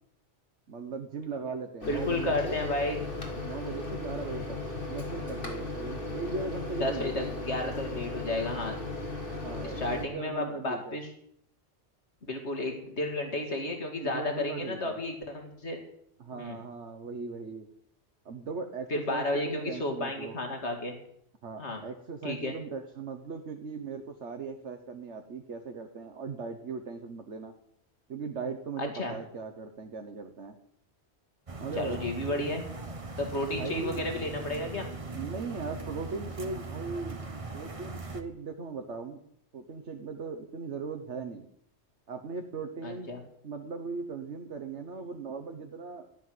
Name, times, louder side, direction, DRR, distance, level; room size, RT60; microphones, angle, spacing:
voice 1, 0.7-2.6 3.3-4.6 4.9-7.2 9.3-11.0 14.0-15.0 16.2-17.7 18.2-20.3 21.4-27.5 28.1-30.5 31.6-32.0 33.5-34.0 35.1-37.2 37.5-39.2 39.5-41.5 42.1-43.1 43.4-46.1, right 4 dB, 80° right, 5 dB, 1.5 m, -38 dB
Microwave oven, 1.8-10.1, left 2 dB, 50° left, 3.4 m, -36 dB
voice 2, 1.9-3.0 6.8-8.8 9.6-11.1 12.3-15.8 16.3-16.6 18.9-20.9 21.6-21.8 22.2-22.6 29.0-29.2 31.8-32.7 33.2-34.9 42.8-43.2, left 2 dB, 75° left, 4 dB, 2.4 m, -32 dB
sound 1, 31.5-38.2, right 3 dB, 30° right, 1.3 m, -40 dB
14.5 x 11.5 x 7.8 m, 0.71 s
omnidirectional pair, 1.2 m